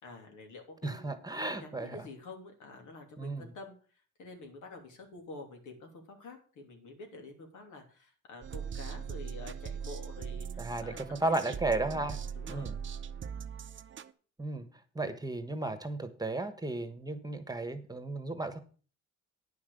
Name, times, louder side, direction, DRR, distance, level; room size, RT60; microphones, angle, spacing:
voice 1, 0.0-1.1 1.5-10.5 10.8-11.6 11.9-12.0 12.3-12.8, left 3 dB, 80° left, 4 dB, 2.9 m, -48 dB
voice 2, 0.8-2.1 3.2-3.5 10.6-12.2 12.5-12.8 14.4-14.7 14.9-18.6, right 2 dB, 10° right, 10 dB, 1.3 m, -34 dB
sound 1, 8.4-14.1, right 7 dB, 40° right, 0.7 m, -40 dB
9.6 x 5.9 x 6.7 m, 0.40 s
cardioid pair, 90°, 30 cm